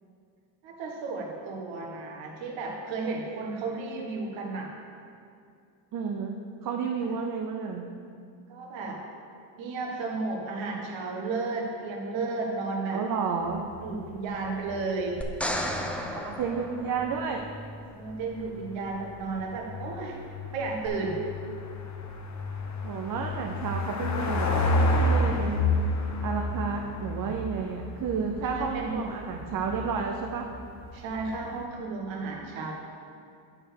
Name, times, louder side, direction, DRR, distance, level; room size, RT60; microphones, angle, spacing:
voice 1, 0.6-4.8 8.5-9.0 9.6-13.0 13.8-15.3 17.9-20.2 20.5-21.2 28.4-29.1 30.9-32.7, right 3 dB, 65° right, -1 dB, 1.5 m, -33 dB
voice 2, 5.9-6.3 6.6-7.9 12.9-13.6 16.1-17.4 22.8-26.0 26.2-30.5, right 5 dB, 45° right, 2 dB, 0.8 m, -31 dB
sound 1, 13.5-31.7, left 2 dB, 35° left, 1.0 m, -31 dB
sound 2, 15.2-17.5 20.8-20.9, equal, 5° left, 0.8 m, -33 dB
8.7 x 4.6 x 6.4 m, 2.4 s
supercardioid pair, 75°, 48 cm